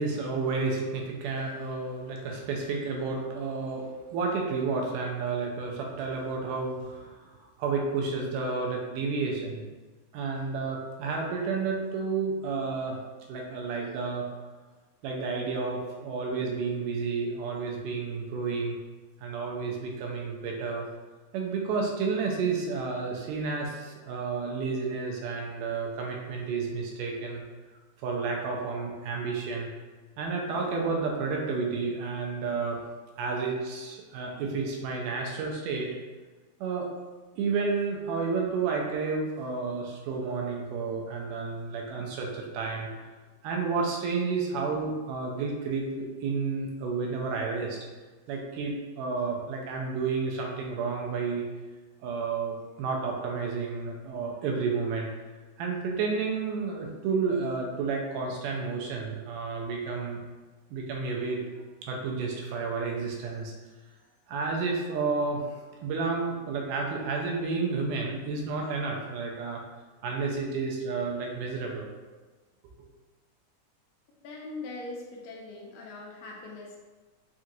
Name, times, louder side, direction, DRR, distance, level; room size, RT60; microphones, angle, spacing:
voice 1, 0.0-7.3 7.6-9.6 10.1-13.0 13.3-14.4 15.0-18.8 19.2-20.9 21.3-27.4 28.0-29.7 30.2-32.8 33.2-35.9 36.6-36.9 37.4-43.1 43.4-47.8 48.3-51.4 52.0-55.1 55.6-60.2 60.7-61.4 61.8-63.5 64.3-65.5 65.8-69.6 70.0-71.9, right 4 dB, 90° right, 0 dB, 2.2 m, -31 dB
voice 2, 74.2-76.8, left 2 dB, 80° left, -2 dB, 1.8 m, -41 dB
5.9 x 2.7 x 2.4 m, 1.3 s
omnidirectional pair, 3.7 m